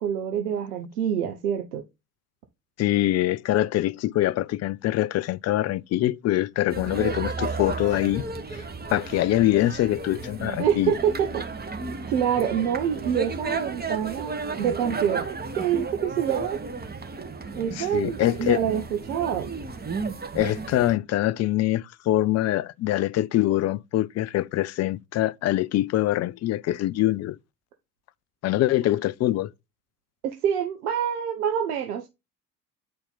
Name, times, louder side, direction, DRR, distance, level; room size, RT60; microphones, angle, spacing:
voice 1, 0.0-1.8 10.6-11.4 12.1-16.6 17.6-19.5 30.2-32.1, right 9 dB, 75° right, 0.9 m, -26 dB
voice 2, 2.8-8.2 8.9-10.9 17.8-18.6 20.3-27.4 28.4-29.5, left 14 dB, 35° left, 0.5 m, -24 dB
sound 1, 6.7-20.9, right 4 dB, 20° right, 1.5 m, -33 dB
9.4 x 4.3 x 4.0 m
figure-of-eight pair, 55°, 45 cm